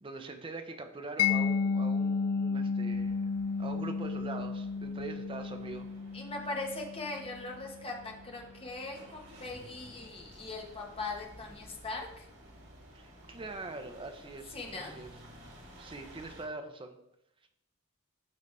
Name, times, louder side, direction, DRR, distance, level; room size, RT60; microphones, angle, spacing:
voice 1, 0.0-3.2 3.6-5.9 12.9-15.1 15.8-17.0, right 3 dB, 25° right, 5 dB, 0.8 m, -43 dB
Mallet percussion, 1.2-8.0, left 5 dB, 90° left, 0.3 m, -32 dB
sound 1, 2.9-16.4, equal, 80° right, 2.4 m, -54 dB
voice 2, 6.1-12.2 14.5-14.9, left 3 dB, 25° left, 1 dB, 1.3 m, -40 dB
12.0 x 4.1 x 3.4 m, 0.82 s
head